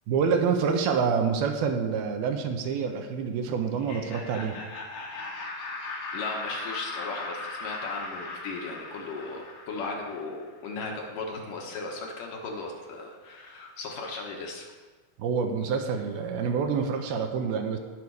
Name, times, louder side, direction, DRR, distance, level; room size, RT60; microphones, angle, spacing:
voice 1, 0.1-4.6 15.2-17.8, right 6 dB, 75° right, 5 dB, 2.7 m, -27 dB
Laughter, 3.7-10.5, left 3 dB, 90° left, 4.2 m, -38 dB
voice 2, 6.1-14.7, left 3 dB, 65° left, 1 dB, 2.5 m, -36 dB
18.5 x 6.6 x 4.7 m, 1.3 s
omnidirectional pair, 4.7 m